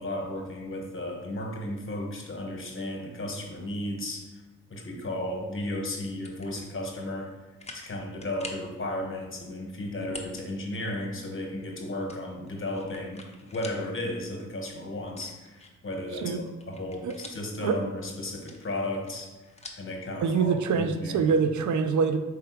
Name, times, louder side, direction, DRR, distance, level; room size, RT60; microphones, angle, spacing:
voice 1, 0.0-4.4 4.7-7.3 7.7-13.2 13.5-19.3 19.8-21.2, left 1 dB, 45° left, 1 dB, 1.1 m, -34 dB
sound 1, 6.0-6.5 7.0-7.1 7.6-7.9 8.2-8.7 10.0-10.4 10.8-10.9 12.1-13.8 14.2-14.3 15.1-15.9 16.4-17.6 18.3-19.9, left 2 dB, 20° left, 0.7 m, -45 dB
voice 2, 20.2-22.2, right 5 dB, 75° right, 9 dB, 0.5 m, -25 dB
4.6 x 3.3 x 3.1 m, 1.2 s
cardioid pair, 55°, 30 cm